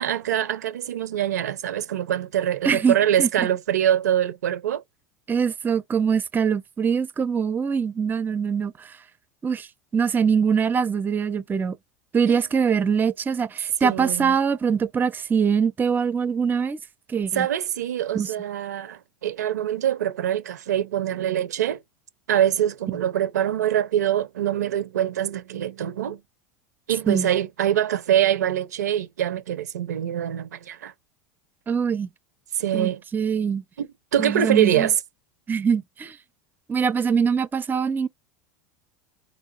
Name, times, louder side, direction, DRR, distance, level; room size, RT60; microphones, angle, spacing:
voice 1, 0.0-4.8 12.3-12.4 13.8-14.4 17.3-21.8 22.3-26.2 26.9-30.9 32.6-33.0 33.8-34.9, right 10 dB, 85° right, 0.6 m, -24 dB
voice 2, 2.6-3.3 5.3-8.9 9.4-9.7 9.9-11.8 12.1-16.8 17.1-17.5 18.1-18.3 27.1-27.3 31.7-32.1 32.7-33.6 34.2-34.9 35.5-36.2 36.7-38.1, right 6 dB, 20° right, 0.5 m, -23 dB
4.5 x 2.5 x 2.7 m
hypercardioid pair, 95°, 9 cm